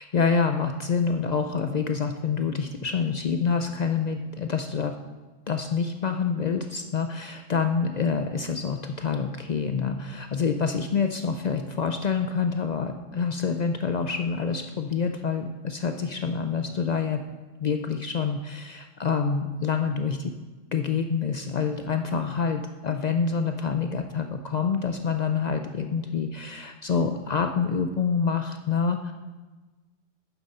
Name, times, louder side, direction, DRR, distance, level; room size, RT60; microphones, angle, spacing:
voice 1, 0.0-4.9 5.5-17.2 17.6-20.3 20.7-29.1, left 5 dB, 65° left, 6 dB, 0.4 m, -27 dB
9.1 x 7.2 x 5.4 m, 1.2 s
omnidirectional pair, 1.3 m